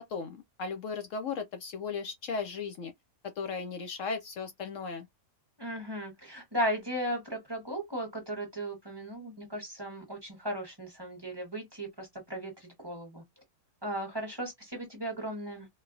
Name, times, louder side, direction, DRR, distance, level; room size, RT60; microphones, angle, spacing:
voice 1, 0.0-2.9 3.2-5.1, left 5 dB, 70° left, 0.9 m, -36 dB
voice 2, 5.6-13.2 13.8-15.7, equal, 20° right, 1.1 m, -36 dB
3.9 x 2.2 x 2.5 m
omnidirectional pair, 1.5 m